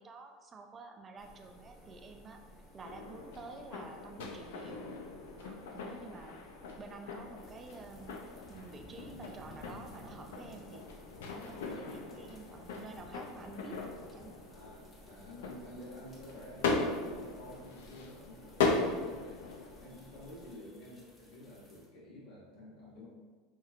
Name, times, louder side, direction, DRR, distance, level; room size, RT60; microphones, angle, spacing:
voice 1, 0.0-2.4 2.7-4.9 5.4-6.4 6.8-8.2 8.5-10.9 11.3-13.8 14.1-14.5, right 3 dB, 30° right, 5 dB, 0.4 m, -50 dB
sound 1, 1.2-20.5, equal, 40° left, 1.5 m, -57 dB
sound 2, 2.8-19.8, left 3 dB, 90° left, 0.5 m, -39 dB
sound 3, 7.3-21.9, left 1 dB, 25° left, 0.8 m, -58 dB
voice 2, 15.0-23.1, left 1 dB, 70° left, -7 dB, 1.5 m, -50 dB
5.4 x 2.9 x 2.4 m, 1.4 s
supercardioid pair, 115°, 0 cm